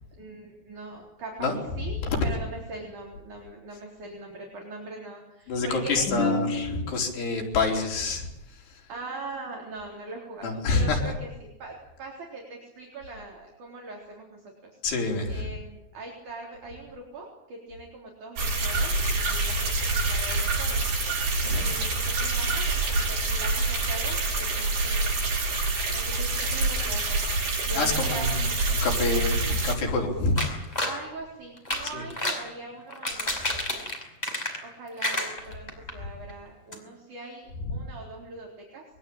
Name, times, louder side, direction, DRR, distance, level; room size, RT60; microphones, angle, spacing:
voice 1, 0.2-2.0 2.2-6.3 8.9-14.7 15.3-20.8 21.5-25.1 25.9-27.0 27.6-28.3 30.8-33.9 34.6-38.8, right 2 dB, 50° right, -1 dB, 5.1 m, -41 dB
voice 2, 1.4-2.3 5.5-8.3 10.4-11.1 14.8-15.5 21.4-21.7 27.7-30.4 31.9-32.0 37.6-37.9, left 3 dB, 80° left, 0 dB, 6.4 m, -27 dB
sound 1, 18.4-29.8, right 2 dB, 75° right, 9.2 m, -26 dB
sound 2, 30.4-31.0 31.6-32.5 32.9-34.7 35.0-35.9 36.3-36.4 36.7-36.8, left 1 dB, 10° left, 5.0 m, -30 dB
24.5 x 22.0 x 8.8 m, 0.91 s
omnidirectional pair, 4.7 m